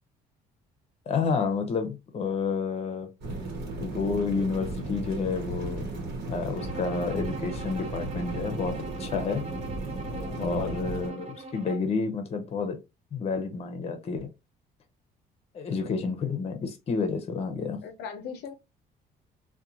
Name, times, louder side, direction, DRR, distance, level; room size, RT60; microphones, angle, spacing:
voice 1, 1.1-3.1 3.8-5.9 6.3-9.4 10.4-12.8 13.1-14.3 15.5-17.8, left 4 dB, 40° left, 0.7 m, -30 dB
sound 1, 3.2-11.1, right 2 dB, 75° right, 1.0 m, -35 dB
Bowed string instrument, 6.6-12.0, right 2 dB, 35° right, 0.5 m, -41 dB
voice 2, 10.1-10.6 17.8-18.5, left 6 dB, 80° left, 0.5 m, -40 dB
2.9 x 2.2 x 2.4 m
cardioid pair, 110°, 17 cm